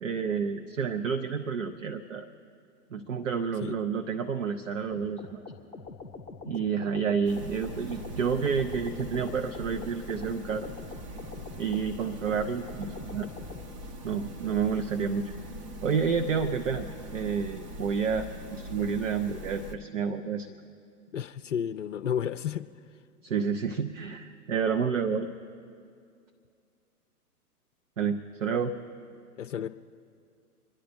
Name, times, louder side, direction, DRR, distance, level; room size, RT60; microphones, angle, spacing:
voice 1, 0.0-2.3 2.9-5.4 6.4-10.7 11.6-13.3 14.0-15.3 15.8-16.9 17.1-20.5 23.2-25.3 28.0-28.7, right 6 dB, 55° right, 7 dB, 0.9 m, -29 dB
sound 1, 4.9-13.6, left 3 dB, 5° left, 1.0 m, -44 dB
sound 2, 7.2-19.7, equal, 30° right, 1.1 m, -42 dB
voice 2, 21.1-22.7 29.4-29.7, left 8 dB, 55° left, 8 dB, 0.6 m, -32 dB
27.0 x 10.5 x 4.3 m, 2.3 s
figure-of-eight pair, 115°, 46 cm